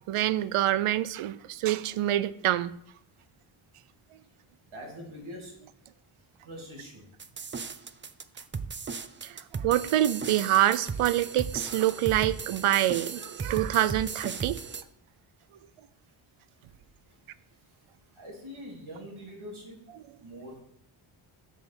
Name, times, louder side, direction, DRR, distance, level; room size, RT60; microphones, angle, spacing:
voice 1, 0.1-2.7 9.2-14.6, right 13 dB, 90° right, 17 dB, 0.6 m, -26 dB
voice 2, 4.7-5.6 6.2-7.1 7.8-7.9 8.6-9.2 15.4-15.5 16.0-16.1 16.6-16.8 17.1-19.8 20.2-20.6, equal, 70° right, -1 dB, 3.0 m, -45 dB
sound 1, 7.2-14.8, right 5 dB, 25° right, 0.5 m, -36 dB
7.3 x 5.0 x 6.9 m, 0.70 s
cardioid pair, 95°, 49 cm